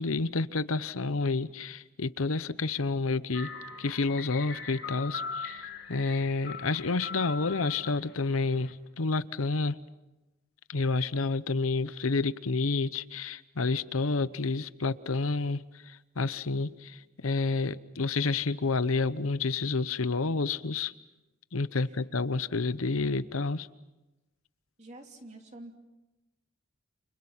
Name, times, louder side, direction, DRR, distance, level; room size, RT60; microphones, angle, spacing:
voice 1, 0.0-3.5 3.8-9.8 10.7-20.9 21.5-23.7, left 3 dB, 85° left, 15 dB, 0.9 m, -29 dB
sound 1, 3.3-8.7, left 5 dB, 55° left, 2.2 m, -41 dB
voice 2, 24.8-25.8, right 1 dB, 35° right, 3 dB, 2.9 m, -47 dB
29.5 x 29.0 x 5.8 m, 1.0 s
head